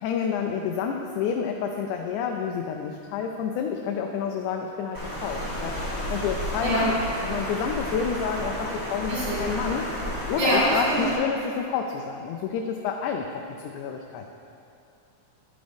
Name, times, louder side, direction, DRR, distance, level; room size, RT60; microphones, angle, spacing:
voice 1, 0.0-5.7 6.1-7.0 7.2-9.9 10.3-13.3 13.7-14.3, left 6 dB, 80° left, 3 dB, 2.0 m, -29 dB
Water, 4.9-11.1, equal, 15° left, 0.7 m, -32 dB
voice 2, 9.1-9.4 10.4-11.1, equal, 85° right, -14 dB, 4.0 m, -24 dB
11.0 x 8.9 x 3.4 m, 2.6 s
omnidirectional pair, 3.6 m